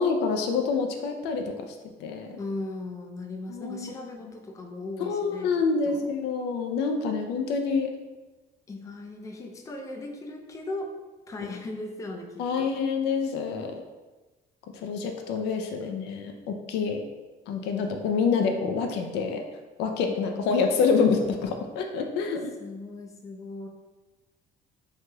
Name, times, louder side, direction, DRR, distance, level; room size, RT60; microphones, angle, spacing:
voice 1, 0.0-2.4 3.5-3.9 5.1-7.9 12.4-13.7 14.7-17.0 17.5-19.4 19.8-22.5, left 5 dB, 85° left, 4 dB, 0.4 m, -27 dB
voice 2, 2.4-6.1 8.7-10.9 11.3-12.8 15.8-16.0 20.1-20.3 22.6-23.7, left 2 dB, 20° left, 2 dB, 0.4 m, -38 dB
3.1 x 2.8 x 2.2 m, 1.2 s
cardioid pair, 110°, 17 cm